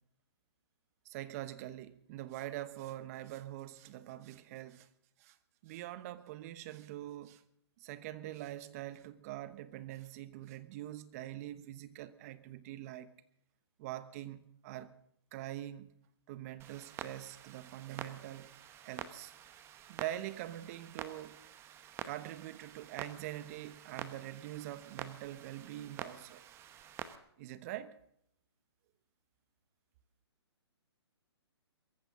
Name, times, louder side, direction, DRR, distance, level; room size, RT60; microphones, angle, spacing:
voice 1, 1.0-4.9 5.2-5.4 5.6-7.4 7.8-13.1 13.8-15.0 15.3-15.9 16.3-18.5 18.8-19.3 19.9-21.4 22.0-26.4 27.4-27.9, right 14 dB, 35° right, 1.1 m, -44 dB
Clock, 16.6-27.2, right 9 dB, 15° right, 1.0 m, -48 dB
23.0 x 15.0 x 3.8 m
hypercardioid pair, 140°, 14 cm